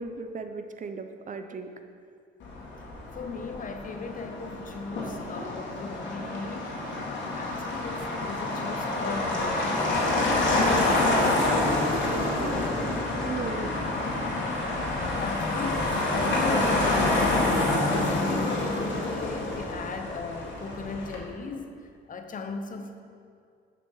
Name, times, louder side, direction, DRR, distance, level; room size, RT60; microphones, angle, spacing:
voice 1, 0.0-1.7 12.0-13.7, right 4 dB, 40° right, 8 dB, 0.7 m, -37 dB
Motor vehicle (road), 2.4-21.1, left 2 dB, 70° left, 2.0 m, -27 dB
voice 2, 3.1-10.2 10.5-11.2 14.8-17.3 17.7-21.7 22.1-23.0, left 4 dB, 40° left, 6 dB, 0.8 m, -37 dB
7.0 x 6.8 x 4.8 m, 2.3 s
cardioid pair, 90°, 20 cm